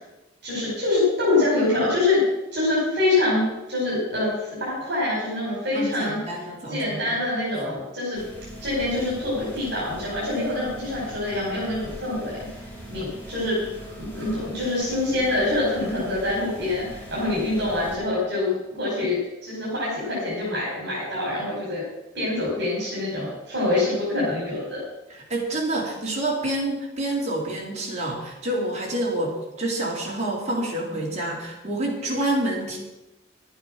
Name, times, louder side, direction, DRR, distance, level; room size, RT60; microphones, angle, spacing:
voice 1, 0.4-2.2 2.5-6.2 6.7-8.2 8.6-12.4 12.9-13.6 13.9-21.8 22.1-24.8, left 2 dB, 55° right, -6 dB, 4.9 m, -25 dB
voice 2, 5.7-7.2 25.1-32.8, right 1 dB, 35° right, -2 dB, 3.5 m, -28 dB
sound 1, 8.1-18.0, equal, 10° left, 4.1 m, -41 dB
11.5 x 9.1 x 6.5 m, 0.98 s
head